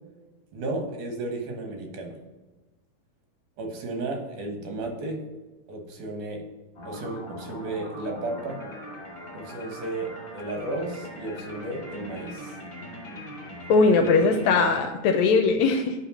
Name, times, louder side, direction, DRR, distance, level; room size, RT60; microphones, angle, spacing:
voice 1, 0.5-2.2 3.6-5.2 5.7-6.4 6.9-8.6 9.3-12.6, right 2 dB, 75° right, 2 dB, 2.6 m, -33 dB
sound 1, 6.7-14.8, equal, 25° left, 1.2 m, -41 dB
voice 2, 13.7-15.9, left 4 dB, 75° left, 5 dB, 1.8 m, -20 dB
9.2 x 3.4 x 6.1 m, 1.2 s
omnidirectional pair, 3.6 m